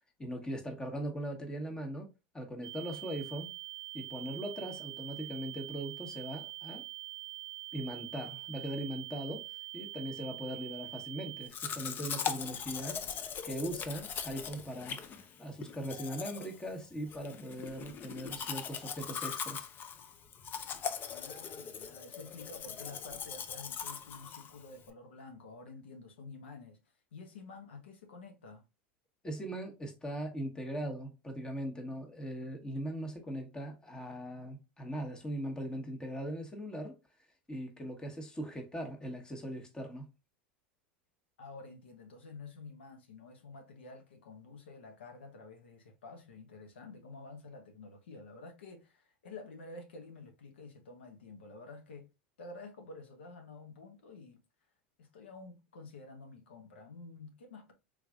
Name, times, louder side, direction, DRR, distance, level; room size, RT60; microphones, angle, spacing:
voice 1, 0.2-3.5 3.9-6.8 7.7-9.5 9.7-15.0 15.4-19.7 29.2-37.0 37.5-40.1, right 1 dB, 15° left, 1.1 m, -40 dB
sound 1, 2.6-11.5, right 17 dB, 60° right, 0.4 m, -44 dB
Domestic sounds home sounds, 11.5-24.9, left 7 dB, 35° left, 0.5 m, -40 dB
voice 2, 21.0-26.8 27.1-28.6 41.4-52.1 52.4-54.4 55.0-57.7, left 3 dB, 90° left, 1.0 m, -50 dB
3.7 x 3.1 x 2.3 m
hypercardioid pair, 105°, 6 cm